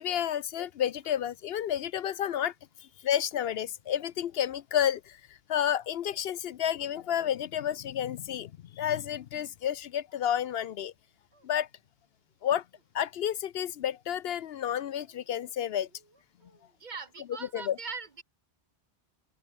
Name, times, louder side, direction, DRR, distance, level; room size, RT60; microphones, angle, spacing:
voice 1, 0.0-2.5 2.8-10.9 11.4-11.7 12.4-12.6 12.9-15.9 17.5-17.8, left 10 dB, 70° left, 0.8 m, -31 dB
sound 1, 11.3-11.6 12.7-12.9 15.0-15.5 15.9-16.9, right 2 dB, 90° right, 4.0 m, -67 dB
voice 2, 16.8-18.2, right 4 dB, 50° right, 1.0 m, -40 dB
open air
omnidirectional pair, 1.1 m